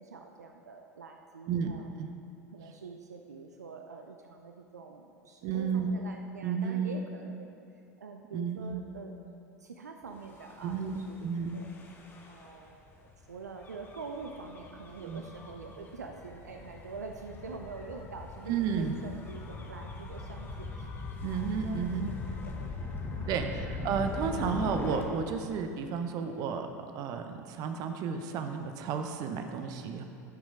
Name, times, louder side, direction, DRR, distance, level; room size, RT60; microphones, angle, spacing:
voice 1, 0.0-1.9 2.5-7.5 8.0-9.1 9.6-11.2 11.5-11.7 12.3-20.9 21.3-23.4, right 4 dB, 80° right, 3 dB, 0.6 m, -45 dB
voice 2, 5.4-5.9 6.4-7.0 8.3-8.8 10.6-11.7 15.0-15.2 18.5-18.9 21.2-22.1 23.3-26.7 26.9-30.0, right 6 dB, 45° right, 6 dB, 0.8 m, -32 dB
Gull seagull / Waves surf / Siren, 10.3-25.0, left 3 dB, 25° left, 1.2 m, -41 dB
12.5 x 6.3 x 4.8 m, 2.5 s
figure-of-eight pair, 75°, 9 cm